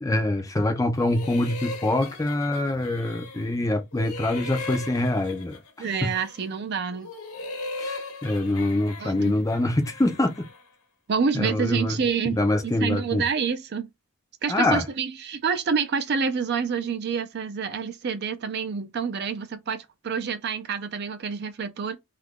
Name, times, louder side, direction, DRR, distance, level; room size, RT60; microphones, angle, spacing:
voice 1, 0.0-5.6 6.0-6.1 7.8-10.5 11.3-13.2 14.5-14.8, left 1 dB, 15° left, 0.4 m, -25 dB
sound 1, 0.9-3.6 3.9-6.5 6.9-10.7, left 2 dB, 80° left, 0.9 m, -38 dB
voice 2, 5.8-7.1 9.0-9.4 11.1-13.9 14.4-22.0, right 6 dB, 45° right, 0.4 m, -28 dB
2.8 x 2.4 x 3.6 m
head